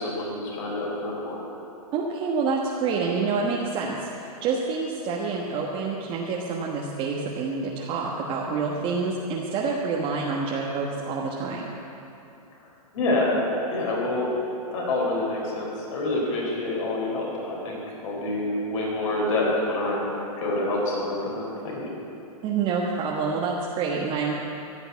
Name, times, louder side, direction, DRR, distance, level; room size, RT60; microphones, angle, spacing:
voice 1, 0.0-1.4 12.9-13.4 13.7-14.3 14.7-20.0 20.4-21.9, left 2 dB, 55° left, -3 dB, 4.2 m, -27 dB
voice 2, 1.9-11.7 22.4-24.4, right 4 dB, 30° right, -2 dB, 1.3 m, -27 dB
15.5 x 6.9 x 9.4 m, 2.8 s
hypercardioid pair, 140°, 19 cm